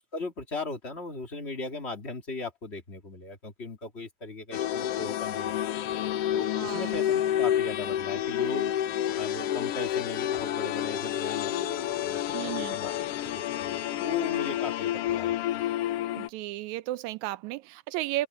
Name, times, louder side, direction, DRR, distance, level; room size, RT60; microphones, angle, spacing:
voice 1, 0.1-5.5 6.3-8.7 9.1-12.9 13.3-15.3, left 3 dB, 20° left, 2.1 m, -38 dB
sound 1, 4.5-16.3, left 11 dB, 85° left, 1.3 m, -29 dB
voice 2, 6.6-6.9 12.3-12.8 16.2-18.3, right 16 dB, 80° right, 1.8 m, -34 dB
omnidirectional pair, 3.6 m